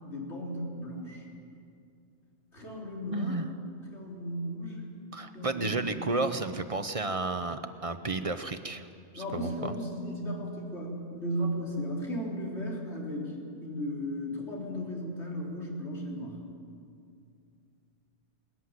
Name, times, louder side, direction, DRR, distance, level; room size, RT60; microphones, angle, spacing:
voice 1, 0.0-1.2 2.5-3.4 3.9-4.8 5.3-6.1 9.2-16.4, equal, 75° left, -3 dB, 4.2 m, -35 dB
voice 2, 3.1-3.5 5.1-8.9 9.1-9.7, right 3 dB, 35° right, 9 dB, 0.8 m, -32 dB
20.5 x 14.0 x 9.7 m, 2.4 s
omnidirectional pair, 1.2 m